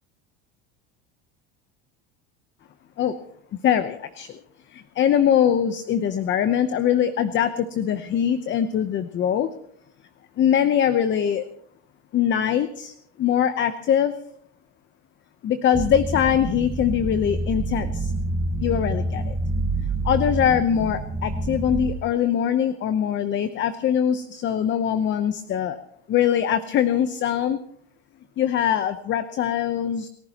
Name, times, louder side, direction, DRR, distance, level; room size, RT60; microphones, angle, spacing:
voice 1, 3.5-4.4 4.7-9.5 10.4-11.4 12.1-14.2 15.4-18.1 18.6-19.4 20.0-25.8 26.1-27.6 28.4-30.1, left 9 dB, 35° left, 11 dB, 0.9 m, -22 dB
sound 1, 15.7-21.9, right 2 dB, 10° right, 1.2 m, -27 dB
29.0 x 15.0 x 3.0 m, 0.70 s
supercardioid pair, 125°, 32 cm